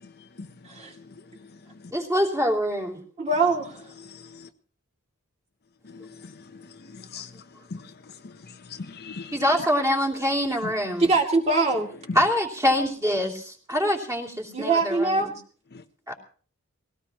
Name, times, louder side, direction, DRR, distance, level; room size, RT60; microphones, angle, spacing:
voice 1, 0.0-1.9 4.0-4.5 5.8-9.7 10.6-10.7 12.1-12.2 15.7-15.8, left 4 dB, 45° left, 7 dB, 0.8 m, -41 dB
voice 2, 1.9-3.0 9.3-11.1 12.1-15.3 16.1-16.2, equal, 15° right, 0 dB, 3.0 m, -25 dB
voice 3, 3.2-3.8 11.0-11.9 14.5-15.3, right 3 dB, 30° right, 0 dB, 2.5 m, -22 dB
21.0 x 17.5 x 3.0 m, 0.42 s
head